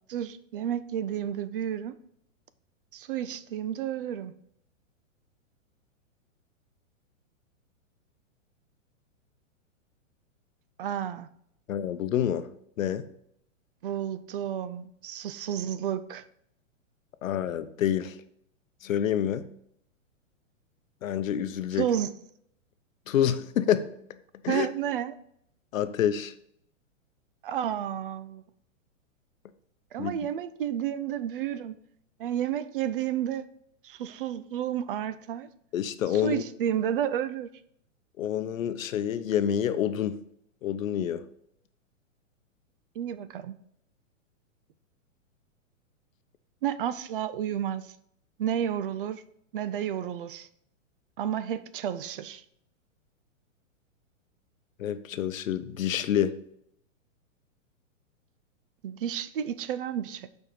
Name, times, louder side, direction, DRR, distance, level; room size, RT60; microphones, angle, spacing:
voice 1, 0.1-2.0 2.9-4.3 10.8-11.3 13.8-16.2 21.7-22.1 24.5-25.2 27.4-28.4 29.9-31.8 32.2-33.4 33.8-35.5 36.1-37.5 43.0-43.6 46.6-47.9 48.4-49.2 49.5-50.5 51.2-52.4 58.8-60.3, right 10 dB, 45° right, 0.4 m, -31 dB
voice 2, 11.7-12.5 12.8-13.1 17.2-18.2 18.8-19.5 21.0-21.9 23.1-24.0 24.4-24.7 25.7-26.3 30.0-30.1 35.7-36.4 38.2-40.2 40.6-41.3 54.8-56.4, left 10 dB, 80° left, 0.8 m, -27 dB
6.9 x 4.5 x 5.0 m
hypercardioid pair, 145°, 39 cm